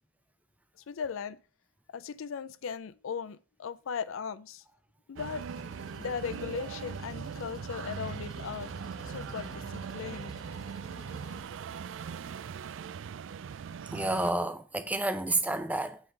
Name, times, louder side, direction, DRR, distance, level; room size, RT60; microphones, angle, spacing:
voice 1, 0.9-1.4 1.9-4.6 5.1-5.4 6.0-8.7 9.1-10.4, left 6 dB, 85° left, 0.4 m, -37 dB
sound 1, 5.2-14.3, right 6 dB, 70° right, 0.3 m, -40 dB
Engine, 5.4-11.4, left 1 dB, 20° left, 1.0 m, -49 dB
voice 2, 13.9-16.0, right 2 dB, 5° right, 0.5 m, -30 dB
8.2 x 3.7 x 6.4 m
head